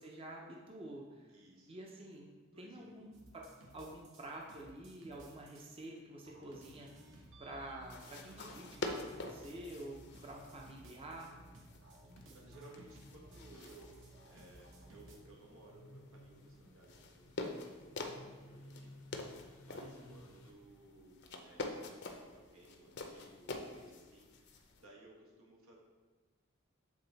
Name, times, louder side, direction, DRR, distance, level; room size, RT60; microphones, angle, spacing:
voice 1, 0.0-1.4 1.7-2.3 2.6-3.1 3.3-6.9 7.4-11.3 19.8-20.2, right 1 dB, 25° right, -1 dB, 0.6 m, -48 dB
voice 2, 1.3-1.8 2.5-3.1 12.3-25.8, right 2 dB, 90° right, -2 dB, 1.5 m, -60 dB
sound 1, 2.7-20.5, left 1 dB, 85° left, 0.8 m, -62 dB
sound 2, 3.1-5.8 6.3-15.2, right 1 dB, 60° right, 1.1 m, -58 dB
sound 3, 7.8-24.8, left 3 dB, 55° left, 0.6 m, -48 dB
7.5 x 3.7 x 4.0 m, 1.4 s
head